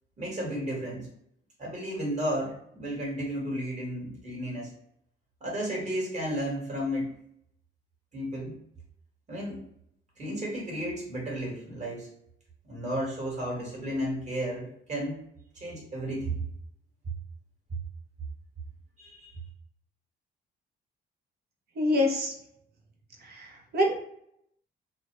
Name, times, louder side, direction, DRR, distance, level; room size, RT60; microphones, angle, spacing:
voice 1, 0.2-1.1 1.6-4.7 5.4-7.1 8.1-8.6 9.3-9.6 10.2-12.1 12.6-15.2 15.5-16.4 19.0-19.3, equal, 35° right, -4 dB, 1.4 m, -33 dB
voice 2, 21.8-22.3 23.2-24.0, left 1 dB, 55° right, 1 dB, 0.8 m, -26 dB
2.5 x 2.1 x 3.0 m, 0.73 s
cardioid pair, 90°, 20 cm